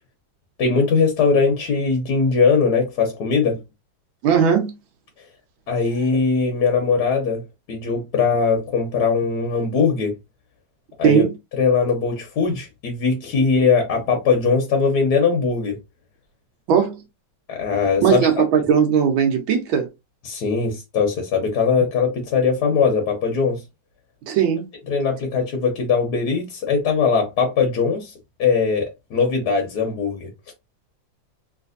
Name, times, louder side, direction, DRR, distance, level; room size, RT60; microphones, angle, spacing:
voice 1, 0.6-3.6 5.7-7.4 7.7-10.1 11.0-11.2 11.6-15.8 17.5-18.3 20.2-23.6 24.9-28.1 28.4-30.3, left 5 dB, 60° left, 1.3 m, -20 dB
voice 2, 4.2-4.7 11.0-11.3 16.7-17.0 18.0-19.9 24.3-24.6, right 7 dB, 90° right, 1.5 m, -18 dB
3.2 x 3.1 x 2.5 m
omnidirectional pair, 2.1 m